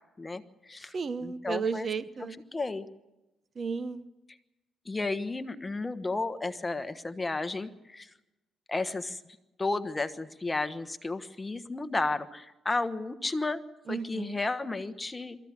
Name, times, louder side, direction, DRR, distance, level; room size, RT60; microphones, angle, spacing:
voice 1, 0.2-0.9 1.2-1.9 2.5-2.9 4.9-8.1 8.7-9.2 9.6-13.6 13.9-15.4, left 3 dB, 20° left, 12 dB, 1.2 m, -33 dB
voice 2, 0.9-2.4 3.6-4.1 13.9-14.3, right 5 dB, 45° right, 14 dB, 0.9 m, -33 dB
22.5 x 15.0 x 9.8 m, 1.0 s
cardioid pair, 90°, 0 cm